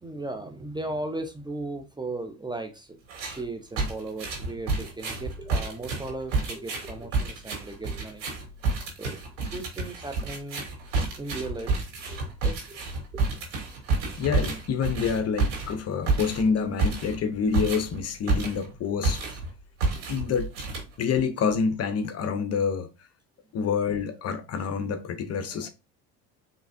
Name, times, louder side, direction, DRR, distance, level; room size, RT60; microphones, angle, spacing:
voice 1, 0.0-3.0 3.2-8.2 9.0-10.6 11.2-12.8 13.1-13.2 19.3-19.4 19.9-20.0 25.5-25.7, right 2 dB, 10° right, 0.7 m, -37 dB
sound 1, 3.1-3.4 3.8-18.7 19.0-19.5 19.8-21.2, right 3 dB, 85° right, 2.6 m, -29 dB
voice 2, 14.2-19.2 20.1-20.5 21.0-22.9 23.5-25.7, left 6 dB, 40° left, 0.8 m, -27 dB
4.7 x 3.3 x 2.6 m
supercardioid pair, 95°, 37 cm